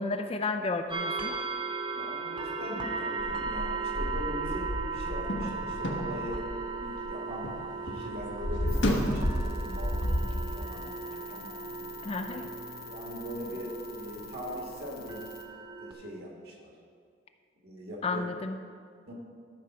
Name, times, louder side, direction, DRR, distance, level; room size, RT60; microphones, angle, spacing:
voice 1, 0.0-1.4 12.0-12.5 18.0-18.6, left 3 dB, 30° left, 7 dB, 0.5 m, -32 dB
sound 1, 0.9-15.9, right 4 dB, 25° right, 0.7 m, -37 dB
voice 2, 1.9-6.5 6.8-7.5 7.8-11.9 12.8-15.2 15.8-16.7 17.6-18.3 19.1-19.2, equal, 55° right, -1 dB, 2.0 m, -41 dB
sound 2, 3.2-7.6 7.9-10.4, equal, 85° left, 1.3 m, -31 dB
sound 3, 8.7-15.4, left 7 dB, 55° left, 1.0 m, -48 dB
13.0 x 4.5 x 6.0 m, 2.1 s
head